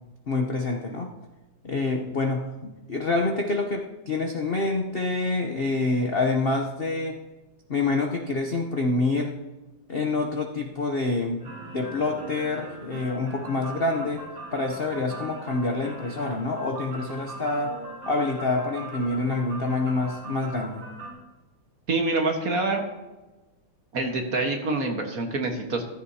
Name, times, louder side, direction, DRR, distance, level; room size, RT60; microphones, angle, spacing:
voice 1, 0.3-1.1 1.6-7.2 7.7-9.4 9.9-11.5 11.7-17.8 18.1-20.9, left 3 dB, 65° left, 3 dB, 0.5 m, -27 dB
sound 1, 11.4-21.1, right 1 dB, 90° right, 4.2 m, -40 dB
voice 2, 21.9-22.8 23.9-25.8, right 3 dB, 45° right, 3 dB, 1.6 m, -26 dB
15.5 x 14.5 x 2.8 m, 1.1 s
omnidirectional pair, 2.3 m